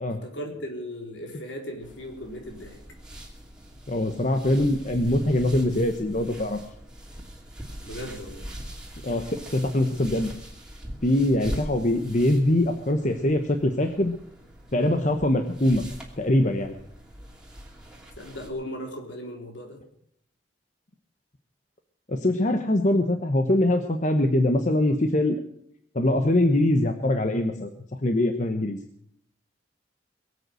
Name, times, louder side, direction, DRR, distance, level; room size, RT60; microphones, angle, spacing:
voice 1, 0.2-2.8 7.8-8.5 18.2-19.8, equal, 70° left, 2 dB, 3.9 m, -37 dB
sound 1, 1.8-18.5, equal, 5° right, 2.7 m, -42 dB
voice 2, 3.9-6.6 9.0-10.3 11.0-14.1 14.7-15.8 16.2-16.7 22.1-25.4 25.9-27.7 28.0-28.8, left 1 dB, 40° left, 6 dB, 1.1 m, -23 dB
22.0 x 8.3 x 6.4 m, 0.69 s
head